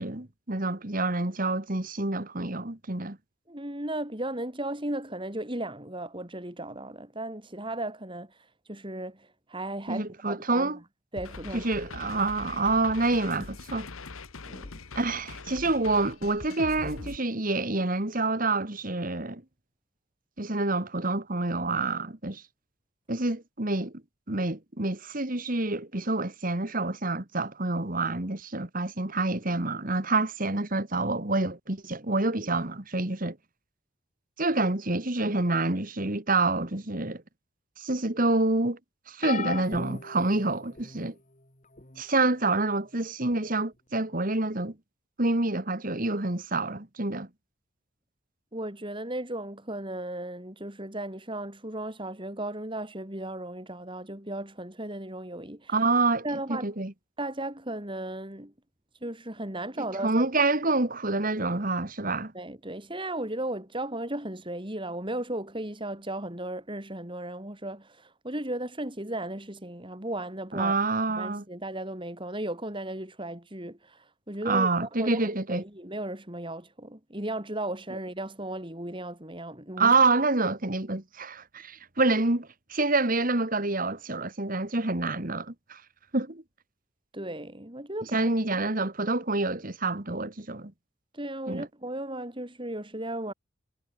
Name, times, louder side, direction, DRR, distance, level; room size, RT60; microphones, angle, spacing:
voice 1, 0.0-3.2 9.9-10.8 11.5-13.9 15.0-19.4 20.4-22.4 23.1-23.9 24.3-33.4 34.4-37.2 37.8-38.8 39.1-41.1 42.0-44.7 45.2-47.3 55.7-56.9 59.8-62.3 70.5-71.4 74.4-75.6 79.8-85.8 86.1-86.4 88.1-90.7 91.5-91.7, right 2 dB, 40° right, 1.9 m, -27 dB
voice 2, 3.5-8.3 8.7-10.7 11.1-11.7 14.4-14.8 48.5-55.7 56.2-56.7 57.2-58.5 59.0-60.2 62.3-70.7 71.1-79.9 87.1-88.2 88.5-88.7 91.1-93.3, right 1 dB, 25° right, 3.6 m, -35 dB
sound 1, 11.2-17.2, left 3 dB, 80° left, 1.5 m, -42 dB
sound 2, 39.2-41.0 41.8-42.0 43.3-43.4, left 4 dB, 35° left, 4.2 m, -36 dB
head